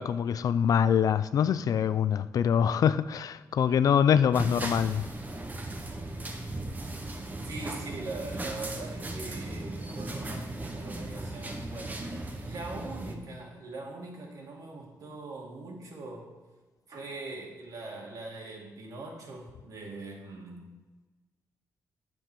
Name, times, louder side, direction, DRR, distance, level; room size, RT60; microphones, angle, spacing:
voice 1, 0.0-5.1, left 8 dB, 60° left, 0.4 m, -24 dB
sound 1, 4.3-13.1, right 2 dB, 25° right, 1.1 m, -37 dB
voice 2, 7.4-16.3 16.9-20.7, right 2 dB, 60° right, 2.4 m, -42 dB
8.8 x 7.3 x 6.0 m
wide cardioid pair, 145°, 7 cm